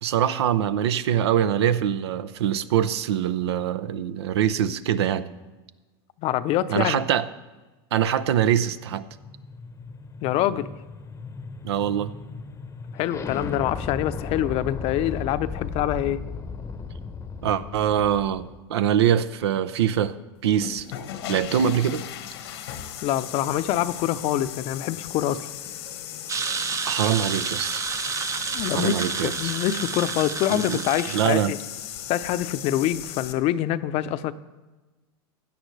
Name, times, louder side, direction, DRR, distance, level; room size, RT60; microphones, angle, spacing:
voice 1, 0.0-5.3 6.7-7.3 7.9-9.1 11.6-12.1 17.4-20.1 20.4-20.9 21.3-22.0 26.8-27.8 28.7-29.5 30.5-30.8 31.1-31.5, right 10 dB, 85° right, 14 dB, 0.6 m, -23 dB
voice 2, 6.2-7.0 10.2-10.7 12.9-16.2 23.0-25.5 28.5-31.6 32.1-34.3, left 12 dB, 50° left, 13 dB, 0.6 m, -25 dB
sound 1, 8.8-18.6, left 4 dB, 20° left, 0.8 m, -36 dB
sound 2, 20.4-33.3, left 11 dB, 80° left, 1.1 m, -37 dB
sound 3, 26.3-31.3, right 6 dB, 25° right, 0.6 m, -30 dB
16.0 x 10.0 x 3.2 m, 1.2 s
hypercardioid pair, 105°, 13 cm